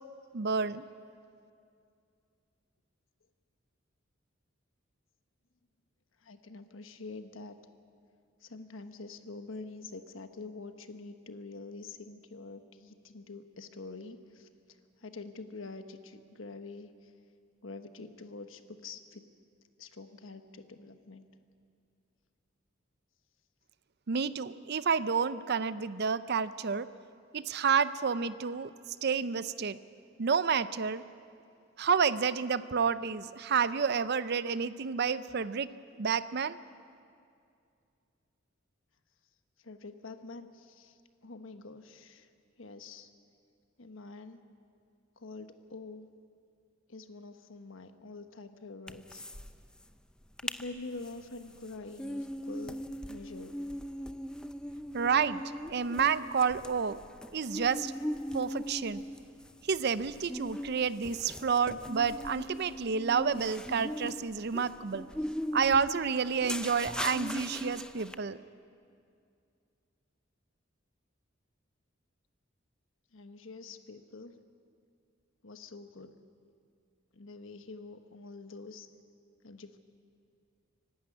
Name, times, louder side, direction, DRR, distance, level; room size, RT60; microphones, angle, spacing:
voice 1, 0.3-0.8 24.1-26.9 27.3-28.7 29.0-29.8 30.2-31.0 31.8-35.7 36.0-36.6 54.9-55.4 55.7-57.0 57.3-57.9 58.3-59.0 59.7-65.0 65.5-68.4, right 6 dB, 55° right, 15 dB, 0.6 m, -29 dB
voice 2, 6.2-7.6 8.4-14.5 15.0-17.1 17.6-19.2 19.8-21.3 39.6-41.0 41.2-42.3 42.6-43.1 43.8-44.4 45.2-46.1 46.9-49.2 50.4-52.8 53.1-53.5 73.1-74.3 75.4-76.1 77.1-78.9 79.4-79.8, left 3 dB, 80° left, 8 dB, 1.2 m, -46 dB
sound 1, 48.9-49.5 49.8-49.9 50.2-50.6 51.0-68.1, equal, 5° left, 0.6 m, -39 dB
25.0 x 12.0 x 9.7 m, 2.4 s
head